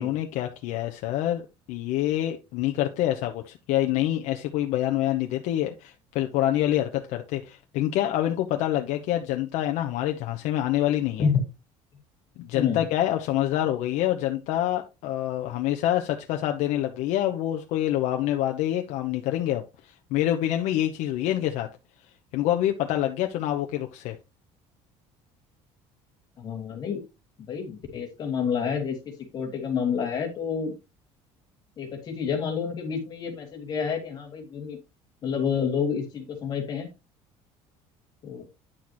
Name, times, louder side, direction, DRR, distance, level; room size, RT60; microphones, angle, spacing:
voice 1, 0.0-1.4 1.7-11.3 12.4-19.6 20.1-21.7 22.3-24.2, left 13 dB, 70° left, 0.9 m, -26 dB
voice 2, 26.4-27.0 27.4-30.7 31.8-34.8 35.2-36.9 38.2-38.5, left 6 dB, 35° left, 2.5 m, -29 dB
10.0 x 6.4 x 3.0 m
cardioid pair, 175°, 12 cm